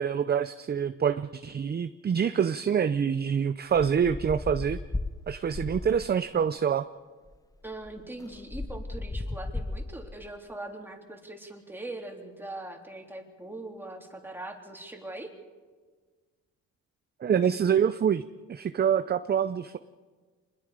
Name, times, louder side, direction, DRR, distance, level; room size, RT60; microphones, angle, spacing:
voice 1, 0.0-4.8 5.3-6.8 17.2-18.2 18.5-19.8, right 7 dB, 35° right, 12 dB, 0.6 m, -26 dB
sound 1, 3.7-6.3 7.3-7.4 7.6-10.3, left 2 dB, 10° left, 0.8 m, -36 dB
voice 2, 7.6-15.3, right 2 dB, 5° right, 1 dB, 3.4 m, -41 dB
26.0 x 21.0 x 5.0 m, 1.4 s
cardioid pair, 90°, 30 cm